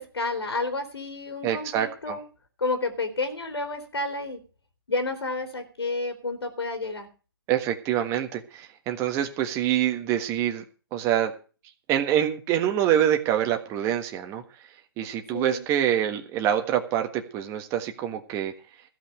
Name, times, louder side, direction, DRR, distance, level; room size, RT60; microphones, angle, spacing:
voice 1, 0.0-2.2 2.6-4.4 4.9-7.1 15.3-15.6, left 3 dB, 85° left, 7 dB, 3.4 m, -30 dB
voice 2, 1.4-2.2 7.5-10.6 10.9-11.3 11.9-14.4 15.0-18.5, right 10 dB, 20° right, 5 dB, 1.5 m, -25 dB
15.0 x 5.8 x 9.0 m, 0.36 s
hypercardioid pair, 145°, 13 cm